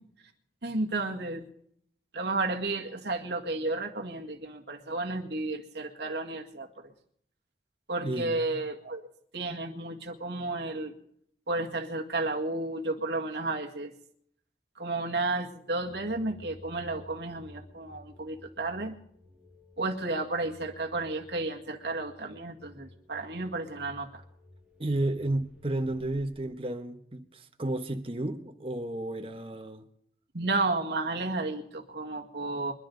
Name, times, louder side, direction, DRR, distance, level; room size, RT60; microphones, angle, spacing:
voice 1, 0.6-1.4 2.1-6.9 7.9-9.0 9.3-10.9 11.5-13.9 14.8-18.9 19.8-24.2 30.3-32.7, right 2 dB, 70° right, 1.9 m, -32 dB
voice 2, 8.0-8.6 24.8-29.8, right 1 dB, 30° right, 1.1 m, -32 dB
sound 1, 15.8-26.3, left 1 dB, 10° right, 1.9 m, -54 dB
26.5 x 11.5 x 3.9 m
head